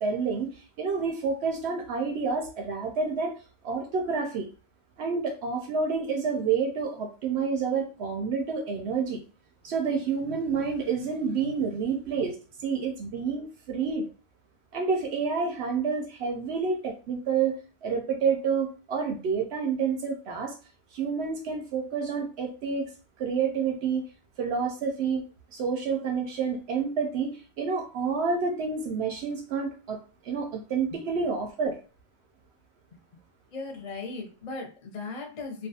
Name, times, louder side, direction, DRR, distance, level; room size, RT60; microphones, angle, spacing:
voice 1, 0.0-0.5 0.8-3.3 3.6-4.5 5.0-9.2 9.6-12.4 12.6-14.1 14.7-20.5 20.9-22.9 23.2-24.0 24.4-25.2 25.5-30.0 30.2-31.8, right 5 dB, 70° right, 3 dB, 0.8 m, -29 dB
voice 2, 33.5-35.7, left 3 dB, 40° left, 1 dB, 0.7 m, -38 dB
2.4 x 2.3 x 2.7 m, 0.36 s
omnidirectional pair, 1.2 m